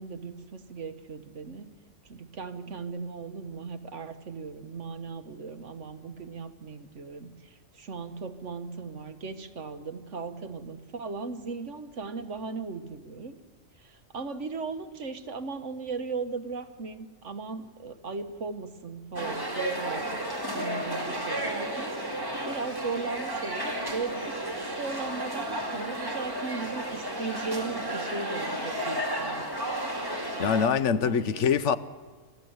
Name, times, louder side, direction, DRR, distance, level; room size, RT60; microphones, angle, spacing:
voice 1, 0.0-1.7 2.0-13.4 13.8-20.2 20.5-29.5 31.0-31.5, right 4 dB, 65° right, 1.6 m, -37 dB
sound 1, 19.2-30.7, right 1 dB, 15° right, 2.7 m, -33 dB
voice 2, 30.4-31.8, left 7 dB, 65° left, 1.1 m, -24 dB
25.5 x 15.0 x 8.0 m
omnidirectional pair, 1.3 m